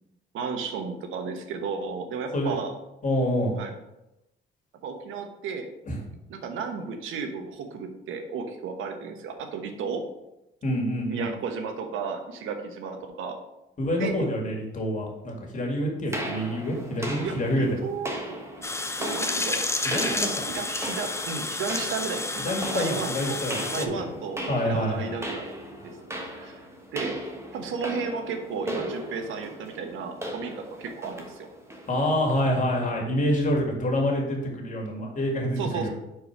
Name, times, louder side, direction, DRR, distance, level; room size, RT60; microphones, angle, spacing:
voice 1, 0.3-2.7 3.6-3.7 4.8-5.7 6.3-10.0 11.1-13.4 14.0-14.3 17.0-18.4 19.0-23.4 23.7-25.5 26.1-26.5 26.9-27.2 27.5-31.5 35.6-35.9, right 5 dB, 85° right, 6 dB, 1.0 m, -34 dB
voice 2, 3.0-3.6 5.9-6.0 10.6-11.3 13.8-17.8 19.8-20.4 22.4-24.1 24.5-25.2 31.9-35.9, equal, 40° left, 0 dB, 2.1 m, -27 dB
sound 1, 16.1-32.5, right 1 dB, 15° right, 1.3 m, -37 dB
sound 2, 18.6-23.9, left 2 dB, 15° left, 0.6 m, -30 dB
4.8 x 4.6 x 5.9 m, 0.92 s
cardioid pair, 90°, 20 cm